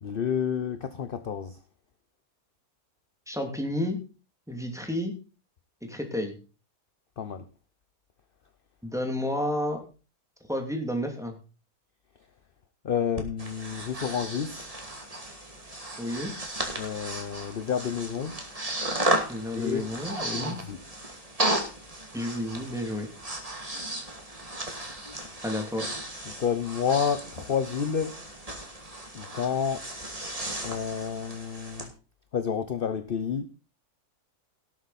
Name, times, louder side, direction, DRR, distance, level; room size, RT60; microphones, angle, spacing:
voice 1, 0.0-1.6 7.2-7.5 12.8-14.7 16.8-18.4 19.6-19.9 20.3-20.8 26.4-28.1 29.1-29.8 30.6-31.9 32.3-33.5, left 7 dB, 45° left, 0.9 m, -30 dB
voice 2, 3.3-4.0 4.5-5.2 5.8-6.4 8.8-9.8 10.5-11.4 16.0-16.3 19.3-20.6 22.1-23.1 25.4-25.9, left 1 dB, ahead, 2.6 m, -31 dB
Breathing, 13.2-31.9, right 1 dB, 25° right, 2.6 m, -34 dB
18.0 x 8.0 x 4.2 m
omnidirectional pair, 1.6 m